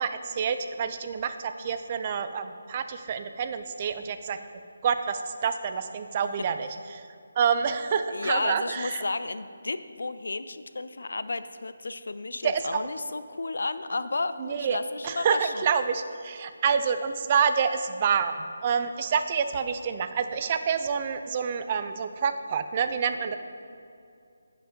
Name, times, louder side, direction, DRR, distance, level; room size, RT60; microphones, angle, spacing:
voice 1, 0.0-4.4 4.8-7.1 7.4-9.0 12.4-12.8 14.4-14.8 15.0-18.3 18.6-23.4, right 6 dB, 25° right, 9 dB, 0.3 m, -27 dB
voice 2, 8.1-15.7, left 3 dB, 75° left, 13 dB, 0.4 m, -32 dB
7.7 x 5.8 x 5.1 m, 2.4 s
figure-of-eight pair, 170°, 0 cm